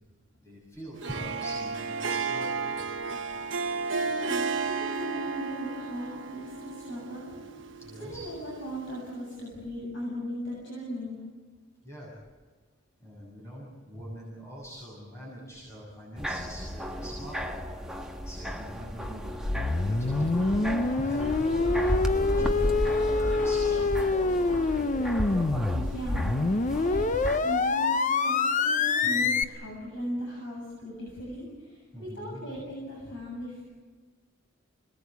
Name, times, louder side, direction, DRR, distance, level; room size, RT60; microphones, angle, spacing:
voice 1, 0.4-2.6 7.8-8.3 11.8-12.2 13.0-17.6 18.2-19.3 19.8-23.9 31.9-32.4, equal, 15° left, -5 dB, 7.0 m, -43 dB
Harp, 0.9-9.2, right 4 dB, 70° right, 1.3 m, -33 dB
voice 2, 4.1-7.3 8.0-11.2 25.7-33.6, equal, 65° left, -3 dB, 7.7 m, -38 dB
sound 1, 16.2-27.4, equal, 5° right, 1.3 m, -33 dB
sound 2, 19.4-29.4, left 3 dB, 40° left, 0.7 m, -26 dB
26.5 x 20.0 x 8.1 m, 1.5 s
head